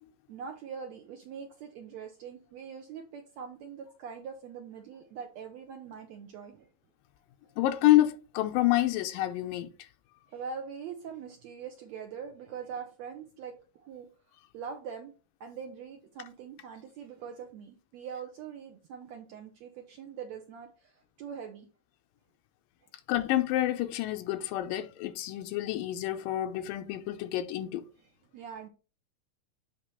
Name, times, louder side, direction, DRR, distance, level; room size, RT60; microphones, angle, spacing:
voice 1, 0.3-6.7 10.3-14.1 14.5-15.1 15.4-21.7 28.0-28.7, right 6 dB, 80° right, 1.6 m, -43 dB
voice 2, 7.6-9.7 23.1-27.8, left 15 dB, 80° left, 2.2 m, -28 dB
8.3 x 2.9 x 5.5 m
omnidirectional pair, 4.0 m